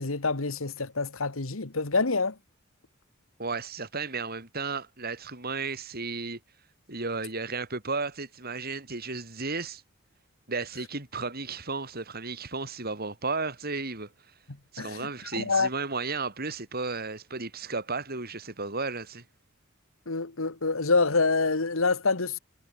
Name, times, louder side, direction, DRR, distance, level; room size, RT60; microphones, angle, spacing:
voice 1, 0.0-2.3 14.8-15.7 20.1-22.4, left 3 dB, 80° left, 1.7 m, -26 dB
voice 2, 3.4-6.4 6.9-9.8 10.5-14.1 14.7-19.2, right 4 dB, 50° right, 5.2 m, -34 dB
head